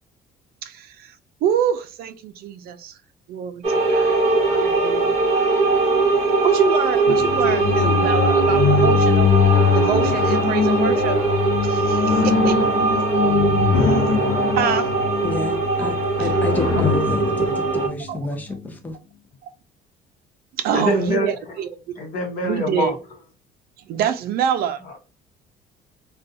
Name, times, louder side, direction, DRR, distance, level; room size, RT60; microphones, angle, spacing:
voice 1, 0.6-1.1 1.4-2.9 3.3-3.6 3.9-4.1 4.5-5.2 6.4-9.3 9.7-11.2 11.6-12.6 13.8-14.2 14.6-14.9 16.2-16.3 18.1-18.2 20.6-21.8 22.4-23.0 23.9-24.8, right 8 dB, 65° right, 0.4 m, -25 dB
sound 1, 3.6-17.9, right 4 dB, 40° right, 0.9 m, -21 dB
sound 2, 7.1-18.7, left 6 dB, 90° left, 0.8 m, -22 dB
voice 2, 15.2-19.0, left 2 dB, 10° left, 0.6 m, -29 dB
voice 3, 20.7-21.3 22.0-22.9, left 2 dB, 60° left, 0.9 m, -24 dB
2.4 x 2.3 x 2.6 m
cardioid pair, 110°, 17 cm